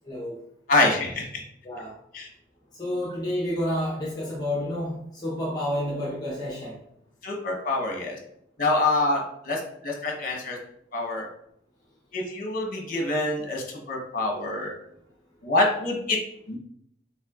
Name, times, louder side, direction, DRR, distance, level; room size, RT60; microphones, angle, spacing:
voice 1, 0.0-0.4 1.6-1.9 2.8-6.8, left 1 dB, 20° left, -4 dB, 0.8 m, -29 dB
voice 2, 0.7-1.3 2.1-2.3 7.2-8.2 8.6-10.6 10.9-11.3 12.1-14.7 15.4-16.2 16.5-16.6, left 2 dB, 50° left, 0 dB, 1.1 m, -26 dB
5.5 x 3.5 x 2.4 m, 0.73 s
head